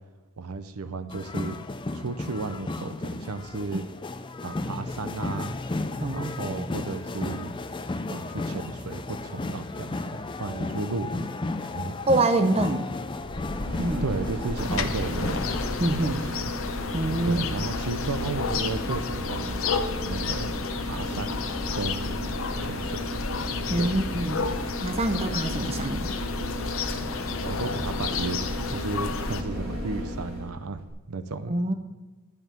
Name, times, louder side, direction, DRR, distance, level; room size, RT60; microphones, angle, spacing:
voice 1, 0.4-1.6 1.9-3.8 4.4-5.6 6.1-7.5 8.1-11.4 11.6-12.0 14.0-15.4 16.0-16.5 17.2-19.7 20.0-21.4 21.7-22.2 22.6-23.0 23.7-23.9 27.4-31.6, right 3 dB, 85° right, 11 dB, 0.7 m, -34 dB
sound 1, 1.1-15.8, left 2 dB, 20° left, 0.4 m, -34 dB
voice 2, 6.0-6.7 12.1-12.9 13.8-14.0 15.8-16.2 16.9-17.6 23.7-24.4 24.8-26.1 31.5-31.7, right 2 dB, 25° right, 7 dB, 0.7 m, -26 dB
sound 2, 13.2-30.5 30.9-31.0, left 1 dB, 70° right, 3.7 m, -33 dB
sound 3, 14.6-29.4, left 5 dB, 65° left, 0.7 m, -32 dB
10.5 x 5.5 x 7.4 m, 1.2 s
head